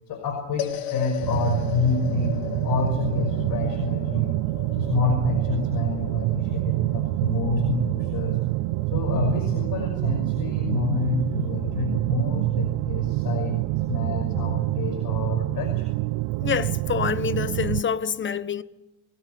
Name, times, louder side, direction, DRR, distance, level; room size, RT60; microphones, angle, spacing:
voice 1, 0.1-4.4 4.7-8.4 8.9-13.6 13.9-15.9, left 4 dB, 45° left, 5.7 m, -28 dB
sound 1, 0.6-11.0, left 11 dB, 85° left, 3.2 m, -38 dB
sound 2, 1.2-17.8, right 20 dB, 65° right, 0.8 m, -26 dB
voice 2, 16.4-18.6, left 7 dB, 25° left, 1.2 m, -26 dB
24.0 x 20.0 x 9.5 m
supercardioid pair, 115°, 45 cm